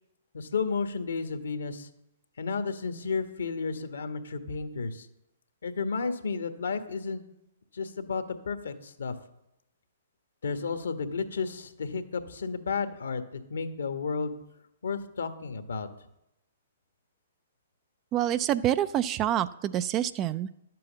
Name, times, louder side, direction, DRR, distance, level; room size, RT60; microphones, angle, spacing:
voice 1, 0.3-1.9 2.4-5.1 5.6-7.2 7.7-9.1 10.4-14.3 14.8-15.9, left 5 dB, 70° left, 8 dB, 1.3 m, -32 dB
voice 2, 18.1-20.5, right 11 dB, 25° right, 14 dB, 0.4 m, -27 dB
11.5 x 7.7 x 6.2 m, 0.84 s
figure-of-eight pair, 120°, 0 cm